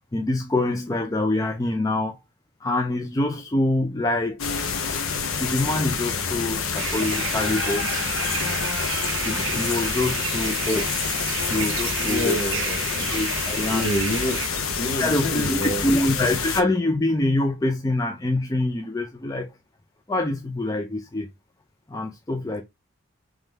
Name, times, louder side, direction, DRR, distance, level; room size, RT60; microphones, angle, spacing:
voice 1, 0.1-2.2 2.6-4.5 4.9-5.0 5.4-7.9 8.2-8.4 8.9-9.0 9.2-11.1 11.5-12.4 13.1-13.9 14.8-19.5 20.1-21.3 21.9-22.6, left 2 dB, 15° left, 0.4 m, -25 dB
sound 1, 4.4-16.6, left 5 dB, 90° left, 0.8 m, -27 dB
sound 2, 6.8-14.5, right 10 dB, 65° right, 0.4 m, -32 dB
voice 2, 12.0-13.1 13.7-14.4 14.8-15.8, left 1 dB, 50° left, 0.8 m, -27 dB
3.6 x 3.2 x 3.3 m
head